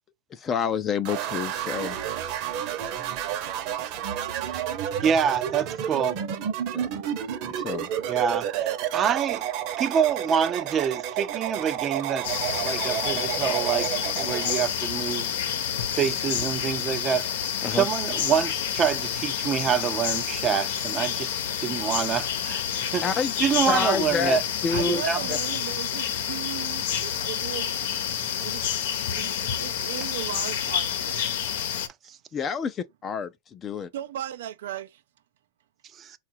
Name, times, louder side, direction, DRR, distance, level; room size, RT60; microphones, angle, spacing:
voice 1, 0.3-2.0 6.7-6.9 7.6-7.9 17.6-17.9 23.0-23.3 23.7-25.0 25.3-25.4 32.3-33.9, left 6 dB, 25° left, 0.5 m, -28 dB
sound 1, 1.0-14.6, right 10 dB, 50° right, 0.9 m, -30 dB
voice 2, 5.0-6.2 8.1-9.4 9.8-12.3 12.6-13.9 14.2-17.3 17.7-21.3 21.6-22.6 22.9-23.0 23.4-24.4 24.7-25.2 32.1-32.2 36.0-36.1, right 8 dB, 30° right, 0.5 m, -26 dB
sound 2, 12.2-31.9, left 9 dB, 75° left, 0.9 m, -29 dB
voice 3, 24.7-27.7 28.4-28.7 29.1-31.2 33.9-35.0, right 11 dB, 80° right, 0.5 m, -36 dB
4.8 x 2.4 x 4.4 m
supercardioid pair, 135°, 0 cm